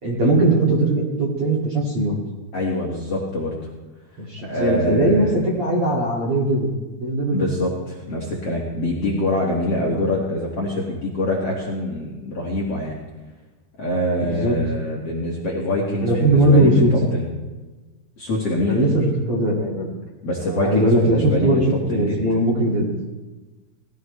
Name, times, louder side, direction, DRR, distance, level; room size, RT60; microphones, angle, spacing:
voice 1, 0.0-2.2 4.2-6.7 7.0-7.5 9.9-10.1 14.2-14.6 16.0-16.9 18.7-19.9 20.5-22.9, right 1 dB, 40° right, -4 dB, 2.4 m, -19 dB
voice 2, 2.5-3.6 4.4-5.4 7.3-12.9 13.8-17.3 18.2-18.8 20.2-21.6 21.9-22.2, left 1 dB, 45° left, -3 dB, 2.3 m, -24 dB
19.5 x 15.0 x 3.3 m, 1.2 s
omnidirectional pair, 5.0 m